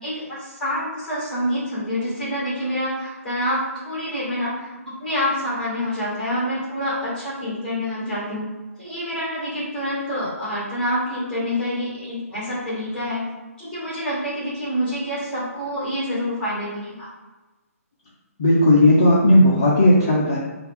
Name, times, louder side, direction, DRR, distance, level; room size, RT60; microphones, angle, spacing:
voice 1, 0.0-8.5 8.8-13.3 13.6-17.1, equal, ahead, -8 dB, 1.0 m, -27 dB
voice 2, 18.4-20.4, left 1 dB, 20° left, -7 dB, 0.5 m, -15 dB
4.5 x 2.4 x 3.4 m, 1.1 s
hypercardioid pair, 180°, 8 cm